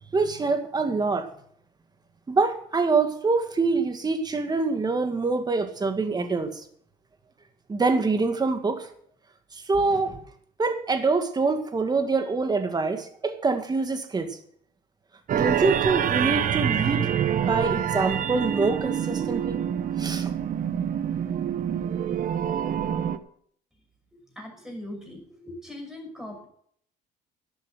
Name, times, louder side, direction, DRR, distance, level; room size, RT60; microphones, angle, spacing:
voice 1, 0.1-1.3 2.3-6.6 7.7-8.9 9.7-10.2 10.6-14.4 15.3-19.6 20.0-20.3, right 4 dB, 25° right, 7 dB, 1.9 m, -25 dB
sound 1, 15.3-23.2, right 9 dB, 55° right, 1.1 m, -26 dB
voice 2, 24.3-26.5, left 1 dB, 5° right, 1 dB, 6.0 m, -40 dB
12.0 x 8.3 x 7.8 m, 0.63 s
cardioid pair, 110°, 17 cm